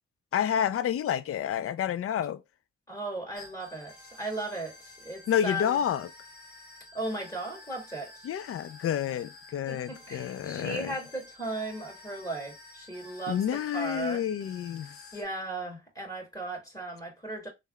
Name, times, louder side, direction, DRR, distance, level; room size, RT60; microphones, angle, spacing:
voice 1, 0.3-2.4 5.3-6.1 8.2-10.9 13.3-15.0, left 9 dB, 50° left, 0.4 m, -29 dB
voice 2, 2.9-5.8 6.9-8.3 9.7-14.2 15.1-17.5, right 2 dB, 10° left, 2.0 m, -36 dB
sound 1, 3.3-15.2, left 2 dB, 85° left, 0.9 m, -51 dB
3.4 x 2.2 x 3.3 m
supercardioid pair, 50°, 30 cm